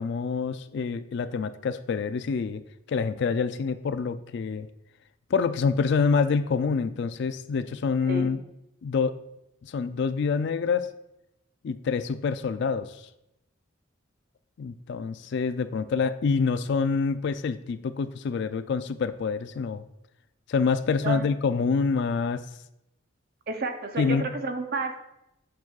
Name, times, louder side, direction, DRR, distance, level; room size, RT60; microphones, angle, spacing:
voice 1, 0.0-2.6 2.9-4.7 5.3-8.4 8.8-9.2 9.6-10.9 11.6-13.0 14.6-19.8 20.5-22.4 24.0-24.3, left 5 dB, 55° left, 12 dB, 0.3 m, -26 dB
voice 2, 23.5-25.0, right 3 dB, 50° right, 7 dB, 0.6 m, -31 dB
7.1 x 6.0 x 2.4 m, 0.86 s
head